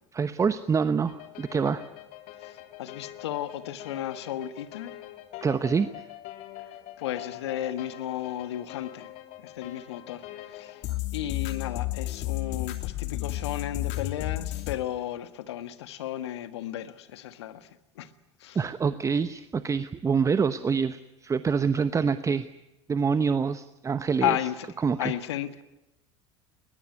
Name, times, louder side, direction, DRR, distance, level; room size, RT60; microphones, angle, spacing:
voice 1, 0.1-1.8 5.4-5.9 18.5-22.5 22.9-24.4 24.8-25.1, right 5 dB, 20° right, 1.0 m, -26 dB
sound 1, 1.1-14.7, left 17 dB, 55° left, 2.7 m, -36 dB
voice 2, 2.4-5.0 6.7-9.1 9.4-10.8 11.1-18.1 18.4-18.6 24.2-24.7 25.0-25.6, left 12 dB, 70° left, 1.5 m, -34 dB
21.5 x 21.0 x 9.7 m
figure-of-eight pair, 75°, 14 cm